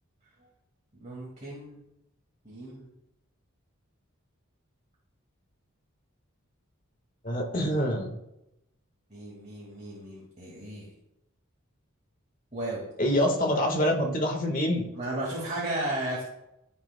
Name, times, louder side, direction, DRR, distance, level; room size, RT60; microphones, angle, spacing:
voice 1, 1.0-1.8 2.4-2.9 9.1-10.9 12.5-12.8 14.9-16.2, right 1 dB, 35° right, -4 dB, 2.1 m, -34 dB
voice 2, 7.2-8.1 13.0-14.9, equal, 40° left, 2 dB, 1.5 m, -26 dB
15.0 x 6.1 x 2.3 m, 0.86 s
head